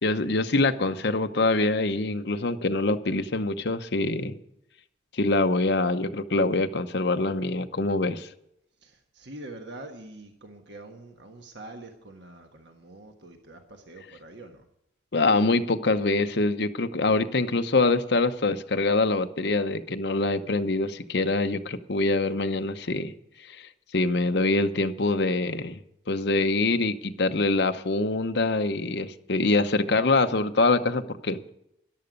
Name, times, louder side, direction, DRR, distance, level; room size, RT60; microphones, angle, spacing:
voice 1, 0.0-4.4 5.1-8.3 15.1-23.1 23.5-25.8 26.1-31.5, left 2 dB, 60° left, 8 dB, 0.8 m, -24 dB
voice 2, 8.8-14.6, right 2 dB, 65° right, 4 dB, 1.4 m, -45 dB
14.0 x 11.0 x 5.3 m, 0.81 s
head